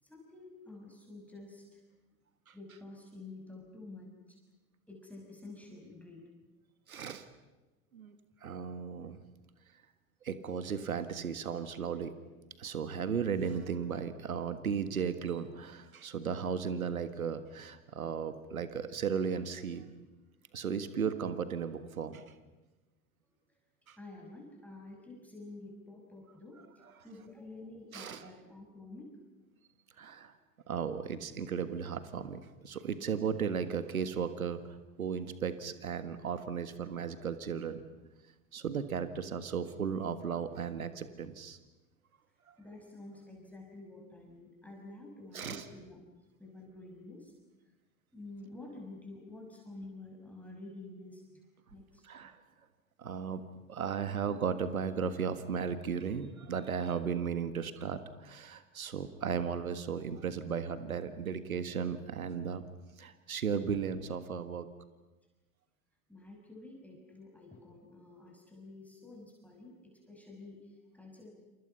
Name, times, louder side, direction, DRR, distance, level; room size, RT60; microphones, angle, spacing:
voice 1, 0.0-1.8 2.5-4.4 4.9-6.3 24.0-29.2 30.0-30.1 42.6-46.0 46.4-47.3 48.1-52.1 66.1-71.3, left 2 dB, 5° left, -1 dB, 6.4 m, -50 dB
voice 2, 6.9-7.3 7.9-8.2 8.4-9.2 10.2-12.1 12.6-19.9 20.5-22.2 23.9-24.0 27.0-27.1 27.9-28.3 30.0-30.3 30.7-34.6 35.0-37.8 38.5-41.6 42.5-42.6 45.3-45.6 52.0-52.4 53.0-53.4 53.7-62.6 63.0-64.7, right 6 dB, 85° right, 11 dB, 1.7 m, -35 dB
29.0 x 28.5 x 5.7 m, 1.1 s
figure-of-eight pair, 80°, 41 cm